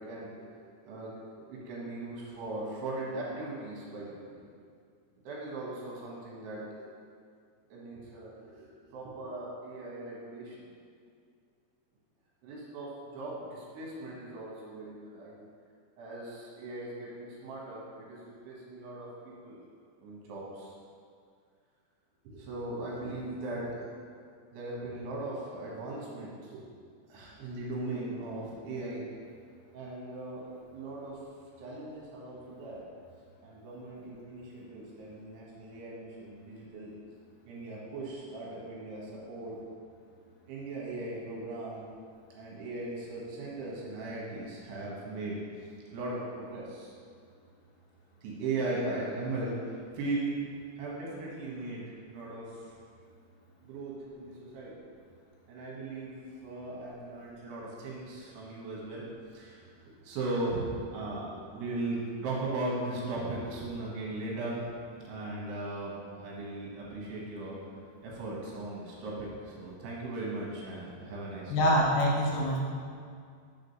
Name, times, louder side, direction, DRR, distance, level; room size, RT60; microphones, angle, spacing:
voice 1, 0.0-4.4 5.2-6.9 7.7-10.7 12.4-15.4 16.0-19.6 20.0-20.8 22.3-23.9 24.5-26.6 27.1-29.1 29.7-30.4 30.7-31.2 31.6-32.8 33.4-36.9 37.5-39.6 40.5-41.9 42.3-46.9 48.2-50.3 50.8-52.7 53.6-54.7 55.5-56.2 56.4-59.0 59.3-64.7 65.0-67.6 68.0-71.7, right 2 dB, 70° right, -4 dB, 3.4 m, -38 dB
voice 2, 71.5-72.6, equal, 75° left, -2 dB, 2.9 m, -25 dB
7.0 x 5.1 x 5.5 m, 2.2 s
omnidirectional pair, 5.1 m